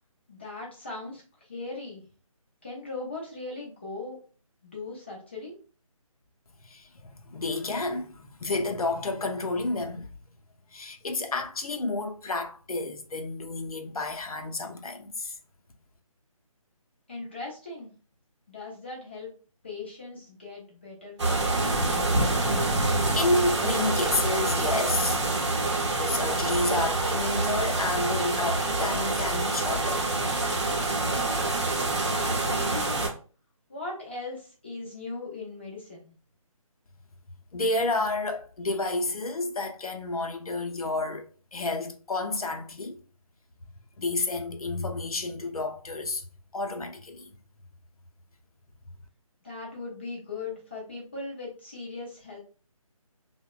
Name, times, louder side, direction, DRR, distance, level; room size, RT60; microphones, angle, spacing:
voice 1, 0.3-2.0 2.6-4.2 4.6-5.5 17.1-17.9 18.5-19.3 19.6-21.7 32.0-33.1 33.7-36.1 49.4-52.4, left 3 dB, 20° left, 0.4 m, -39 dB
voice 2, 6.6-10.1 10.7-15.4 22.7-25.2 25.9-30.1 37.5-43.0 44.0-46.3 46.5-47.3, left 2 dB, 75° left, 0.6 m, -30 dB
sound 1, 21.2-33.1, right 2 dB, 50° right, 0.7 m, -26 dB
2.8 x 2.1 x 2.3 m
figure-of-eight pair, 155°, 18 cm